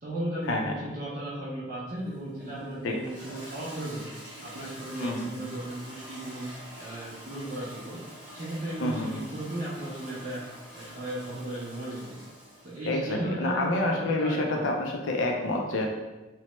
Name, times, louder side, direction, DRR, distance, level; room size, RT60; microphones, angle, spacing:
voice 1, 0.0-4.1 4.4-6.5 6.8-8.0 8.3-10.4 10.7-12.2 12.6-14.7, right 1 dB, 45° right, -9 dB, 0.5 m, -35 dB
Toilet flush, 1.9-12.9, equal, 5° right, 0.7 m, -46 dB
voice 2, 5.0-5.4 8.8-9.1 12.9-15.9, left 2 dB, 85° left, 1 dB, 0.4 m, -28 dB
3.0 x 2.1 x 2.9 m, 1.1 s
head